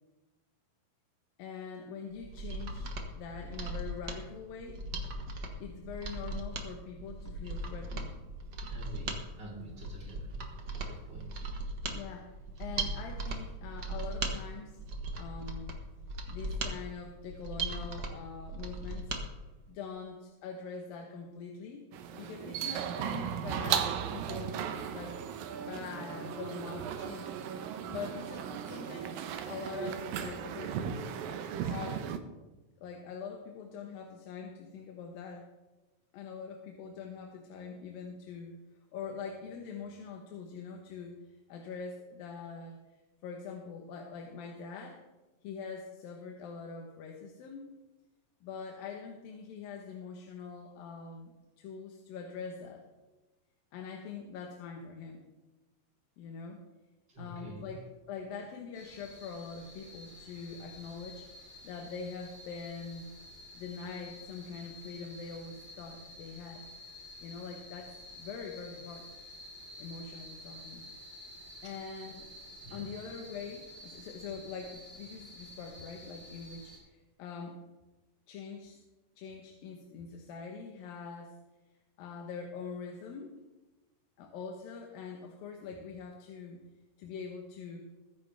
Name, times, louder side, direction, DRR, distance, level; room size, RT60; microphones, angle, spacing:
voice 1, 1.4-4.8 5.6-8.2 11.9-14.8 15.2-15.8 16.3-19.1 19.7-21.9 22.1-27.3 27.9-31.2 31.6-32.1 32.8-35.5 36.1-41.2 41.5-42.8 43.2-45.0 45.4-47.7 48.4-51.3 51.6-52.8 53.7-55.3 56.2-56.6 57.2-57.8 58.1-63.1 63.5-66.6 67.2-69.1 69.8-70.9 71.6-72.3 72.7-77.6 78.3-78.8 79.2-81.3 82.0-83.3 84.2-86.6 87.0-87.8, left 5 dB, 85° left, 2 dB, 2.9 m, -44 dB
Mechanisms, 2.2-19.2 19.6-19.7, right 2 dB, 65° right, 1.0 m, -38 dB
voice 2, 8.7-10.4 10.7-11.3 57.1-57.7 71.6-71.8 72.6-72.9, equal, 30° right, -4 dB, 4.2 m, -47 dB
sound 1, 21.9-32.2, right 8 dB, 85° right, 2.6 m, -36 dB
sound 2, 58.7-76.8, left 1 dB, 15° left, 3.6 m, -50 dB
21.0 x 9.9 x 3.4 m, 1.1 s
omnidirectional pair, 4.0 m